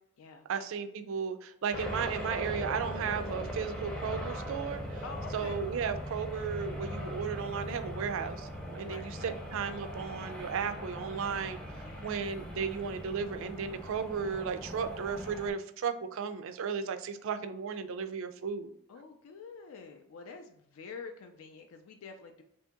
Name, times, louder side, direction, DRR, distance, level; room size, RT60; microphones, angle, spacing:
voice 1, 0.5-5.0 5.3-11.6 12.0-18.7, right 6 dB, 65° right, 9 dB, 0.3 m, -35 dB
sound 1, 1.7-15.5, equal, 5° left, 0.4 m, -40 dB
voice 2, 5.0-5.6 8.8-9.4 11.8-12.2 18.9-22.4, left 5 dB, 70° left, 5 dB, 0.3 m, -47 dB
2.8 x 2.7 x 3.5 m, 0.78 s
head